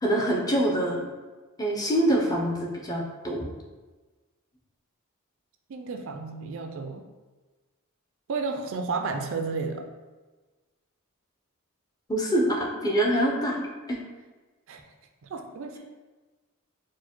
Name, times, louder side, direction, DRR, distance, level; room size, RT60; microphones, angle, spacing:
voice 1, 0.0-1.1 1.6-3.5 12.1-14.0, right 1 dB, 15° left, -1 dB, 0.6 m, -25 dB
voice 2, 5.7-7.1 8.3-9.8 13.3-13.4 14.7-14.8 15.2-15.8, right 4 dB, 60° right, 5 dB, 0.4 m, -32 dB
4.5 x 2.2 x 4.3 m, 1.3 s
head